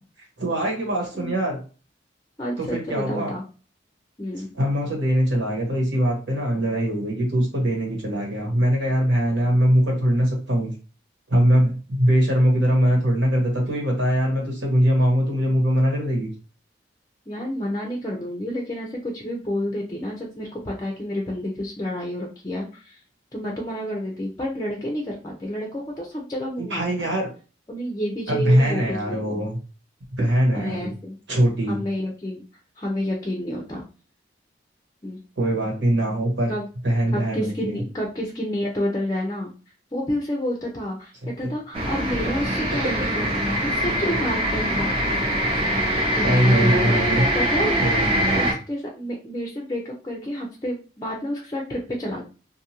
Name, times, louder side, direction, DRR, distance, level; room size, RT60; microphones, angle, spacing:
voice 1, 0.4-1.6 2.6-3.3 4.5-10.7 11.3-16.3 26.6-27.3 28.3-29.6 30.2-30.9 31.3-31.8 35.4-36.5 36.8-37.8 46.2-47.2 47.8-48.5, equal, 75° right, -1 dB, 1.3 m, -22 dB
voice 2, 2.4-3.4 4.2-4.5 17.3-23.0 23.3-26.8 27.7-29.4 30.5-31.2 31.7-32.4 32.8-33.8 35.0-35.2 36.5-36.7 37.1-39.5 39.9-41.1 41.4-44.9 46.1-47.8 48.4-52.2, equal, 20° left, -1 dB, 0.5 m, -29 dB
sound 1, 41.7-48.5, equal, 30° right, 0.6 m, -23 dB
2.6 x 2.4 x 2.9 m, 0.35 s
head